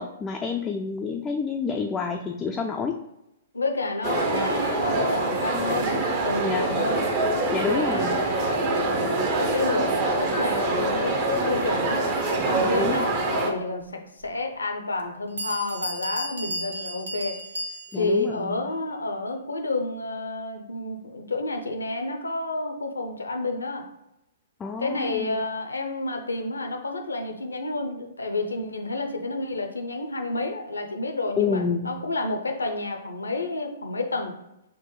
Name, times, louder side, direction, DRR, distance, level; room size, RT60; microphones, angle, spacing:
voice 1, 0.0-3.0 6.4-6.7 7.5-8.2 12.6-13.0 17.9-18.6 24.6-25.4 31.4-31.9, left 5 dB, 15° left, 1 dB, 0.3 m, -28 dB
voice 2, 3.5-7.1 7.3-13.9 14.2-17.4 17.9-23.8 24.8-34.4, left 2 dB, 85° left, 4 dB, 0.6 m, -30 dB
sound 1, 4.0-13.5, right 2 dB, 40° right, 0.7 m, -25 dB
Bell, 14.2-14.3 15.0-15.1 15.4-18.2, equal, 80° right, 0.6 m, -34 dB
5.9 x 2.1 x 3.1 m, 0.88 s
figure-of-eight pair, 120°, 0 cm